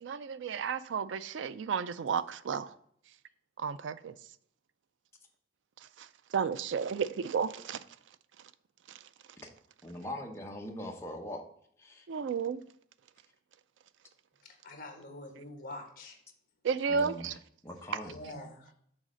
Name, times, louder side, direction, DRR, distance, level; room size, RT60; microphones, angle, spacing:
voice 1, 0.0-2.7 3.6-4.1 6.3-7.8 12.1-12.6 16.6-17.3, right 6 dB, 80° right, 0.4 m, -32 dB
voice 2, 9.8-11.4 11.8-12.1 16.9-17.3 17.6-18.2, left 1 dB, 15° left, 0.9 m, -41 dB
voice 3, 14.4-16.2 18.0-18.7, left 1 dB, 45° left, 1.5 m, -45 dB
6.3 x 4.1 x 6.3 m
head